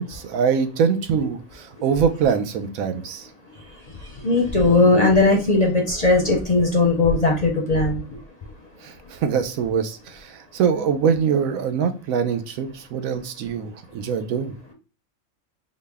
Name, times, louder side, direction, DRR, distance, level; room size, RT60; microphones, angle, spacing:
voice 1, 0.0-3.3 8.8-14.5, right 7 dB, 85° right, 8 dB, 1.0 m, -23 dB
voice 2, 4.2-8.0, left 2 dB, 45° left, 1 dB, 0.6 m, -18 dB
4.0 x 2.1 x 3.3 m, 0.33 s
omnidirectional pair, 1.4 m